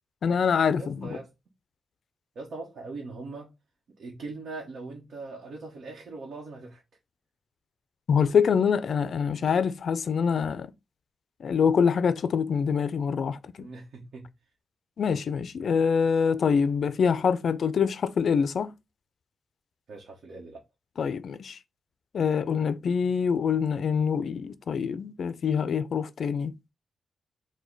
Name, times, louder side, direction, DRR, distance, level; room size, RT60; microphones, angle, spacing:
voice 1, 0.2-1.2 8.1-10.7 11.4-13.7 15.0-18.7 21.0-21.6 22.1-26.5, left 6 dB, 65° left, 0.4 m, -25 dB
voice 2, 0.8-1.3 2.3-3.5 4.0-6.8 13.6-14.3 19.9-20.6, right 3 dB, 70° right, 1.0 m, -41 dB
4.8 x 2.2 x 3.9 m
wide cardioid pair, 150°, 0 cm